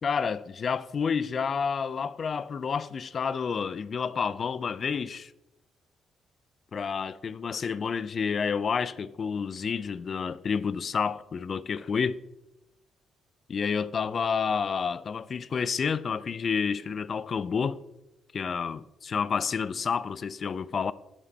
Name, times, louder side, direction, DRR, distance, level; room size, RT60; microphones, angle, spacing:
voice 1, 0.0-5.3 6.7-12.2 13.5-17.8 18.3-20.9, left 6 dB, 45° left, 0.3 m, -29 dB
8.2 x 5.2 x 4.1 m
cardioid pair, 90°, 0 cm